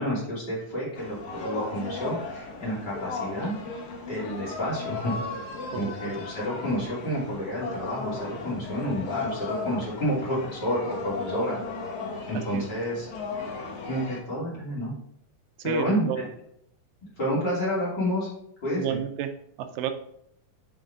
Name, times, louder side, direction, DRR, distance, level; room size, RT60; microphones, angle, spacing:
voice 1, 0.0-3.5 4.1-5.1 5.7-11.6 12.3-13.1 13.9-14.9 15.6-16.2 17.2-18.3 18.6-19.0, equal, 30° left, -6 dB, 3.3 m, -29 dB
sound 1, 1.0-14.2, left 4 dB, 65° left, 2.5 m, -36 dB
voice 2, 15.6-15.9 18.7-19.3 19.6-19.9, right 10 dB, 85° right, 8 dB, 2.3 m, -30 dB
7.8 x 5.6 x 3.7 m, 0.71 s
omnidirectional pair, 3.9 m